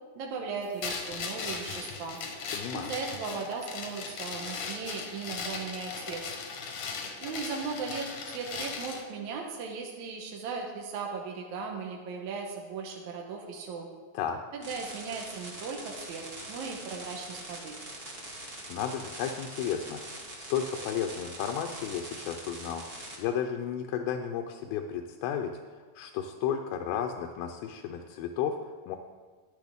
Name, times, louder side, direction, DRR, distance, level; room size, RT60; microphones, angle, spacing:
voice 1, 0.2-2.2 2.7-6.2 7.2-13.9 14.5-17.8, right 5 dB, 70° right, 0 dB, 1.9 m, -37 dB
sound 1, 0.8-9.1, left 5 dB, 65° left, 1.7 m, -38 dB
voice 2, 2.5-2.9 14.1-14.4 18.7-29.0, left 8 dB, 85° left, 4 dB, 2.5 m, -33 dB
sound 2, 14.6-23.2, right 1 dB, 35° right, 0.9 m, -43 dB
12.5 x 10.5 x 3.5 m, 1.4 s
omnidirectional pair, 4.2 m